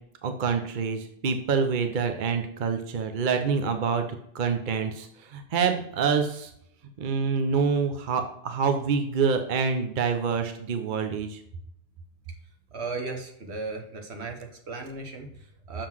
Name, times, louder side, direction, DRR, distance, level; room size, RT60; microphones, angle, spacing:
voice 1, 0.2-4.0 4.3-6.5 7.0-11.4, right 5 dB, 50° right, 6 dB, 0.7 m, -26 dB
voice 2, 12.7-15.9, right 3 dB, 70° right, 3 dB, 1.4 m, -36 dB
6.7 x 3.8 x 6.0 m, 0.72 s
omnidirectional pair, 1.2 m